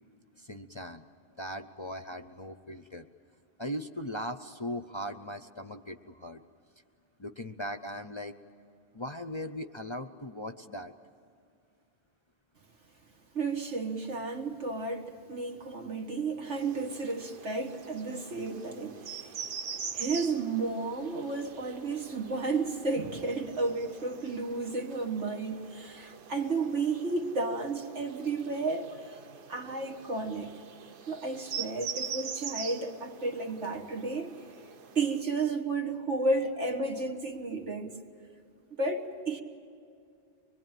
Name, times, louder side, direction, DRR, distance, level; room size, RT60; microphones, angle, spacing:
voice 1, 0.4-1.1 1.3-3.1 3.6-6.4 7.2-8.3 8.9-10.9, equal, 35° left, 0.5 m, -39 dB
voice 2, 13.3-19.5 19.9-29.1 29.5-30.5 31.1-34.3 35.0-38.0 38.8-39.4, right 3 dB, 80° right, 2.2 m, -32 dB
sound 1, 16.4-35.2, right 6 dB, 55° right, 0.9 m, -44 dB
24.5 x 22.0 x 9.1 m
omnidirectional pair, 1.2 m